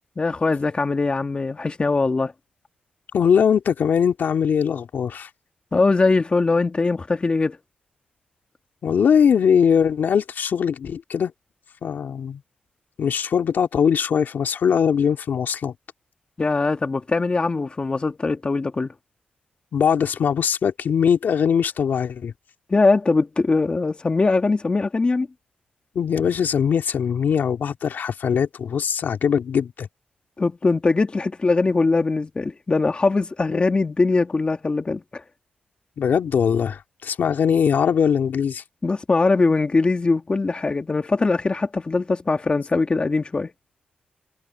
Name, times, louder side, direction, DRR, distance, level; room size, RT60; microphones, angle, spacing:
voice 1, 0.2-2.3 5.7-7.6 16.4-18.9 22.7-25.3 30.4-35.2 38.8-43.5, left 3 dB, 30° left, 2.1 m, -21 dB
voice 2, 3.1-5.3 8.8-11.3 11.8-12.4 13.0-15.7 19.7-22.3 25.9-29.9 36.0-38.6, left 7 dB, 65° left, 2.6 m, -21 dB
cardioid pair, 80°, 3 cm